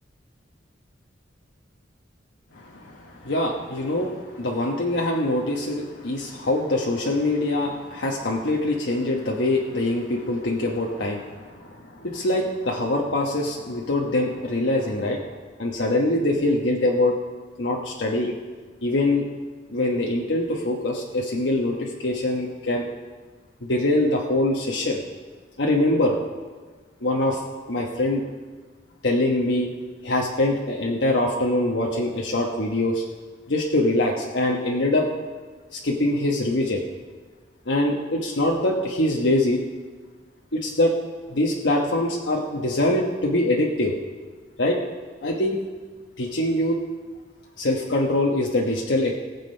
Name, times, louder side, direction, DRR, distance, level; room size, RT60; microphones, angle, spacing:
voice 1, 2.5-15.2 15.6-17.1 17.6-18.3 18.8-19.3 19.7-22.9 23.7-25.0 25.6-26.2 27.0-27.4 27.7-28.2 29.0-29.7 30.0-33.0 33.5-35.0 35.7-36.8 37.7-39.6 40.5-40.9 41.3-43.9 44.6-44.8 45.2-45.6 46.2-46.8 47.6-49.1, left 1 dB, 80° left, -1 dB, 1.2 m, -23 dB
19.0 x 7.5 x 5.4 m, 1.4 s
head